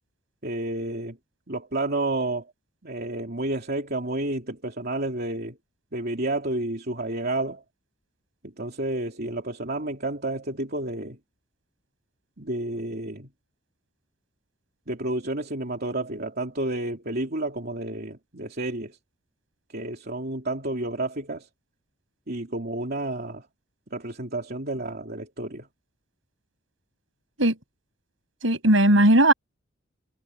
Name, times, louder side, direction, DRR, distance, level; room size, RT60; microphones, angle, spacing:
voice 1, 0.4-1.2 1.5-2.5 2.8-5.6 5.9-7.6 8.4-11.2 12.4-13.3 14.9-19.0 19.7-21.5 22.3-23.5 23.9-25.7, right 2 dB, 50° right, 3.2 m, -30 dB
voice 2, 28.4-29.3, right 1 dB, 75° right, 7.8 m, -17 dB
head